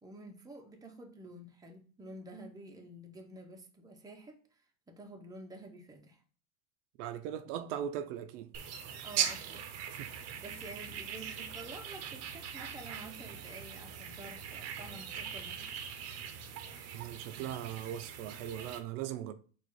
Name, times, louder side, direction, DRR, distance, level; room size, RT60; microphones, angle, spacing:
voice 1, 0.0-4.4 4.9-6.2 9.0-9.8 10.1-16.0 16.7-17.0, right 1 dB, 10° right, 0.7 m, -50 dB
voice 2, 7.0-8.5 9.9-10.1 16.9-19.3, right 10 dB, 80° right, 0.6 m, -39 dB
sound 1, 8.5-18.8, right 8 dB, 45° right, 0.7 m, -40 dB
4.2 x 2.5 x 4.5 m
supercardioid pair, 120°, 35 cm